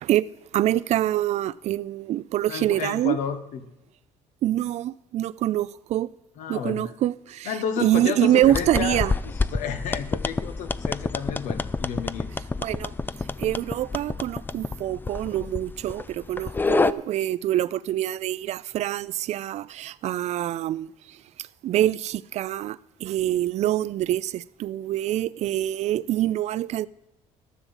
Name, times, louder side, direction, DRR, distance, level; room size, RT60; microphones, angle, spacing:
voice 1, 0.0-3.2 4.4-6.1 6.5-7.5 7.8-9.1 12.6-12.9 13.4-20.9 21.6-26.9, right 13 dB, 60° right, 0.4 m, -25 dB
voice 2, 2.5-3.6 6.4-6.8 7.4-12.3, left 7 dB, 80° left, 1.2 m, -31 dB
sound 1, 8.4-16.9, left 3 dB, 15° left, 0.4 m, -28 dB
12.5 x 7.1 x 7.3 m
cardioid pair, 105°, 13 cm